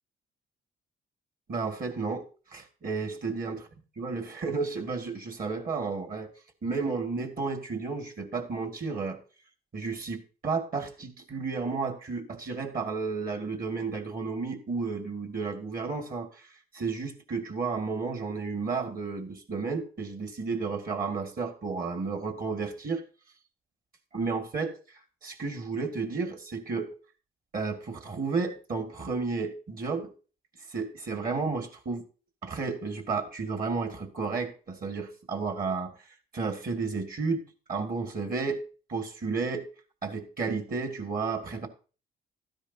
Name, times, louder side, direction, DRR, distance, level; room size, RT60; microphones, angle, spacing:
voice 1, 1.5-2.2 2.5-3.6 4.0-6.3 6.6-9.2 9.7-16.4 16.7-23.0 24.1-24.7 25.2-26.9 27.5-30.1 30.7-32.0 32.4-35.9 36.3-38.6 38.9-39.7 40.0-41.7, right 4 dB, 45° right, 6 dB, 2.2 m, -32 dB
13.0 x 10.0 x 2.8 m, 0.36 s
cardioid pair, 90°, 20 cm